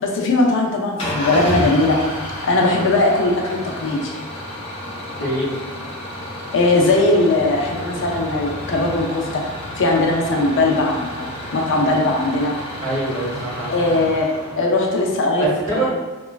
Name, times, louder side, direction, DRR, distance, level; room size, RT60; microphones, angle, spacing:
voice 1, 0.0-2.0 2.4-4.1 6.5-9.4 9.8-11.3 11.5-12.5 13.7-15.8, left 2 dB, 60° left, 0 dB, 0.5 m, -19 dB
Engine starting / Idling, 1.0-15.1, left 1 dB, 25° left, 0.8 m, -31 dB
voice 2, 5.2-5.6 12.8-14.1 15.4-15.9, right 2 dB, 70° right, -8 dB, 1.4 m, -24 dB
2.9 x 2.3 x 2.3 m, 1.3 s
head